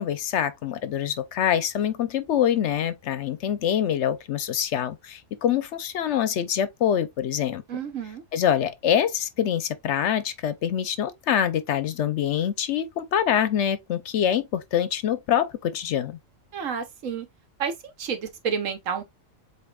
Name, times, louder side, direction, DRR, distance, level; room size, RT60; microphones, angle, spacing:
voice 1, 0.0-7.6 8.3-16.2, left 9 dB, 65° left, 0.9 m, -25 dB
voice 2, 7.7-8.2 16.5-17.3 17.6-17.7 18.0-19.0, right 6 dB, 75° right, 1.4 m, -30 dB
7.8 x 2.6 x 2.3 m
omnidirectional pair, 1.4 m